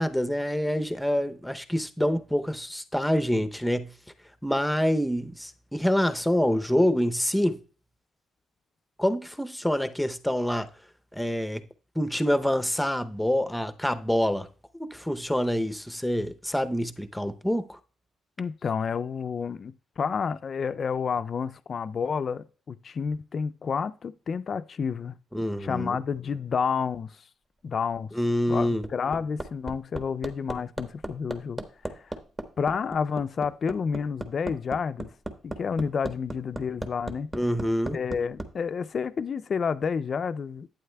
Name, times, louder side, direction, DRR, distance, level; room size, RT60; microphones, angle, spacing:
voice 1, 0.0-3.9 4.4-7.6 9.0-10.7 11.1-11.6 12.0-14.5 14.8-17.8 25.3-26.0 28.1-28.9 37.3-38.0, equal, 5° left, 0.6 m, -26 dB
voice 2, 18.4-25.2 25.6-27.2 27.6-28.1 28.5-31.6 31.9-32.1 32.6-35.1 35.4-37.3 37.9-40.7, left 6 dB, 45° left, 0.3 m, -30 dB
Hammer, 28.6-38.5 39.8-39.9, right 1 dB, 20° right, 1.1 m, -36 dB
11.0 x 8.8 x 2.2 m
cardioid pair, 90°, 0 cm